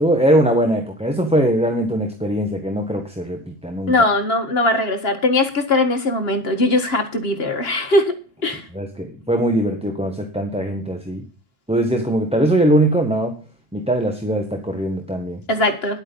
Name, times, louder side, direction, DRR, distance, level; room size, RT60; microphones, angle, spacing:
voice 1, 0.0-3.9 8.7-11.2 11.7-13.3 13.7-15.4, right 1 dB, 5° right, 3 dB, 1.3 m, -21 dB
voice 2, 3.9-8.7 15.5-16.0, left 2 dB, 50° left, 6 dB, 2.0 m, -20 dB
11.0 x 8.6 x 5.3 m, 0.37 s
omnidirectional pair, 1.3 m